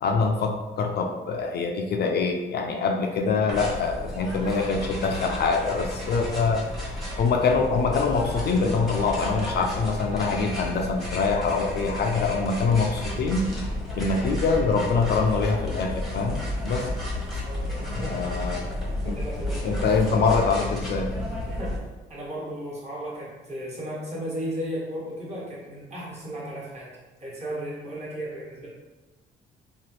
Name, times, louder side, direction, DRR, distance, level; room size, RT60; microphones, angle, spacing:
voice 1, 0.0-6.7 7.2-13.5 13.9-16.9 17.9-18.8 19.0-19.2 19.6-21.1, left 4 dB, 55° left, 2 dB, 0.4 m, -24 dB
sound 1, 3.5-21.8, left 1 dB, ahead, 0.9 m, -32 dB
voice 2, 17.4-18.5 19.0-20.3 21.6-21.8 22.1-26.9 27.2-28.7, equal, 35° right, -6 dB, 1.3 m, -35 dB
2.9 x 2.3 x 3.2 m, 1.2 s
cardioid pair, 90°, 20 cm